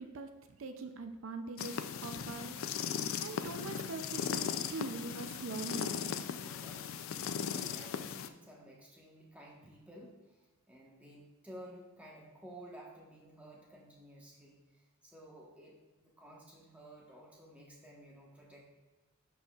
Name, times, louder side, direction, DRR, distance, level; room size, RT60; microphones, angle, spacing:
voice 1, 0.0-2.6 2.9-6.1, right 3 dB, 70° right, 7 dB, 0.4 m, -43 dB
sound 1, 1.6-8.3, left 7 dB, 75° left, 0.4 m, -38 dB
voice 2, 6.4-10.4 10.7-18.6, right 1 dB, 5° right, -3 dB, 1.1 m, -54 dB
11.5 x 4.2 x 2.3 m, 1.2 s
head